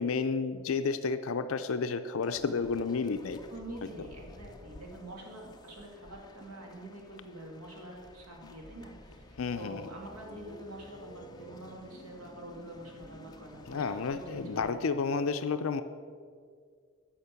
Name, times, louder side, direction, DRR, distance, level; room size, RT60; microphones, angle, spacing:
voice 1, 0.0-3.4 8.4-8.5 9.4-9.8 13.7-15.8, left 5 dB, 65° left, 10 dB, 0.5 m, -31 dB
sound 1, 2.2-14.7, left 1 dB, 20° left, 0.5 m, -53 dB
voice 2, 3.5-14.9, right 1 dB, 90° right, 0 dB, 2.5 m, -46 dB
10.0 x 5.9 x 8.1 m, 2.1 s
head